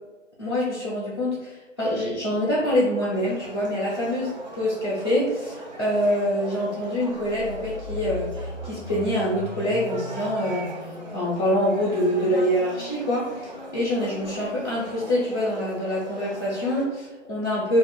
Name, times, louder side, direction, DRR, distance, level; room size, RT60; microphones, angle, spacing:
voice 1, 0.4-10.7 11.1-17.8, equal, 15° left, -10 dB, 0.5 m, -25 dB
sound 1, 3.1-16.9, right 1 dB, 35° right, 0.4 m, -40 dB
sound 2, 7.1-17.0, left 3 dB, 65° left, 0.5 m, -40 dB
2.4 x 2.4 x 3.4 m, 1.1 s
figure-of-eight pair, 140°, 39 cm